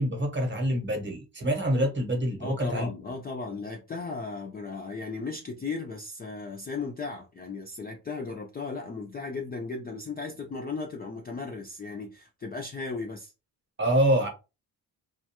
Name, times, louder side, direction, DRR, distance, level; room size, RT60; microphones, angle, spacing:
voice 1, 0.0-2.9 13.8-14.3, right 1 dB, 25° right, 0.8 m, -26 dB
voice 2, 2.4-13.3, left 4 dB, 25° left, 0.3 m, -36 dB
2.4 x 2.2 x 2.8 m
cardioid pair, 130°, 42 cm